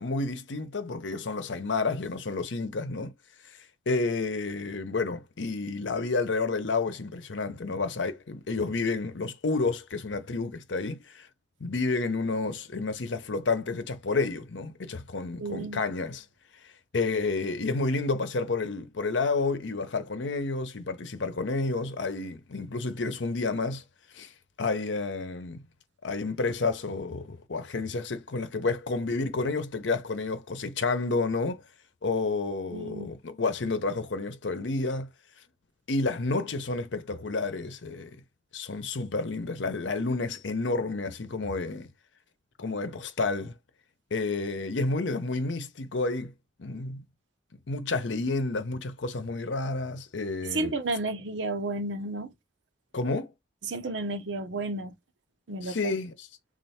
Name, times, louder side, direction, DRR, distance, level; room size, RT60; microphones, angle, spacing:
voice 1, 0.0-3.1 3.9-11.3 11.6-16.2 16.9-23.8 24.1-24.3 24.6-25.6 26.0-31.6 32.0-35.1 35.9-38.2 38.5-41.9 42.6-43.5 44.1-46.3 46.6-47.0 47.7-50.7 52.9-53.3 55.6-56.3, left 3 dB, 80° left, 0.8 m, -30 dB
voice 2, 15.4-15.8 32.7-33.1 50.5-52.3 53.6-54.9 55.5-55.8, right 2 dB, 75° right, 0.8 m, -32 dB
3.3 x 2.5 x 4.2 m
head